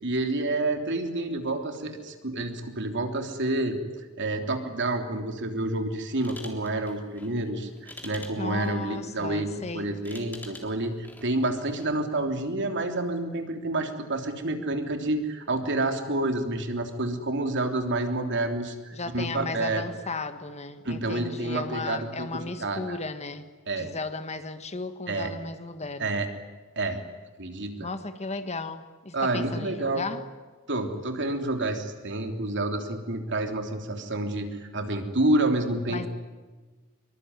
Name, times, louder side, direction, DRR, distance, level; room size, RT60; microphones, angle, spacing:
voice 1, 0.0-3.8 4.2-19.8 20.8-23.0 23.7-23.9 25.1-25.3 26.0-26.3 26.7-27.0 27.4-27.9 29.1-30.0 30.7-36.1, right 2 dB, 60° right, 5 dB, 3.3 m, -29 dB
sound 1, 6.1-12.0, left 2 dB, 10° left, 3.6 m, -48 dB
voice 2, 8.4-9.9 18.9-23.5 23.8-26.2 27.8-30.2 35.9-36.1, left 3 dB, 30° left, 10 dB, 1.6 m, -35 dB
25.5 x 23.5 x 9.7 m, 1.3 s
head